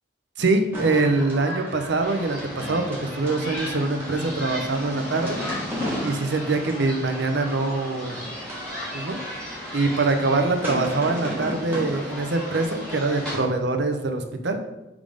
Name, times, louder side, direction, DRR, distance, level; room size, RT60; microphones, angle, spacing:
voice 1, 0.4-5.4 6.0-8.2 8.9-9.2 9.7-14.6, right 3 dB, 65° right, 6 dB, 0.7 m, -24 dB
sound 1, 0.7-12.6, equal, 10° right, 1.6 m, -36 dB
sound 2, 2.0-13.4, left 1 dB, 5° left, 2.0 m, -35 dB
5.0 x 3.6 x 5.2 m, 1.0 s
head